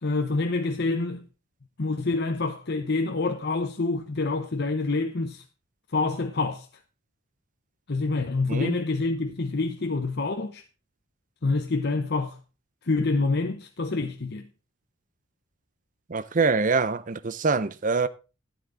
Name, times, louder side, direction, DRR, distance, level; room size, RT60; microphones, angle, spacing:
voice 1, 0.0-1.2 1.8-5.4 5.9-6.7 7.9-10.6 11.4-12.4 12.8-14.5, left 3 dB, 55° left, 0.8 m, -27 dB
voice 2, 16.1-18.1, right 4 dB, 40° right, 0.6 m, -24 dB
12.5 x 10.0 x 3.8 m
head